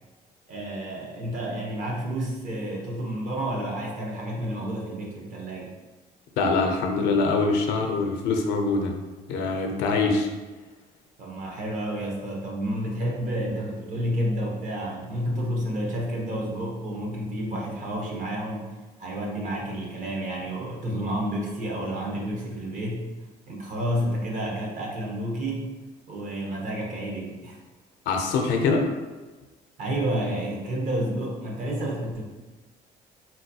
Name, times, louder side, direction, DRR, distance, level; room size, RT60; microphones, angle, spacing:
voice 1, 0.5-5.7 11.2-18.6 19.0-23.0 23.5-25.7 26.1-27.6 29.8-32.2, right 1 dB, 50° right, -1 dB, 0.9 m, -30 dB
voice 2, 6.4-8.9 9.3-10.3 28.1-28.9, left 3 dB, 90° left, 3 dB, 0.5 m, -24 dB
3.9 x 2.2 x 2.8 m, 1.2 s
cardioid pair, 110°, 17 cm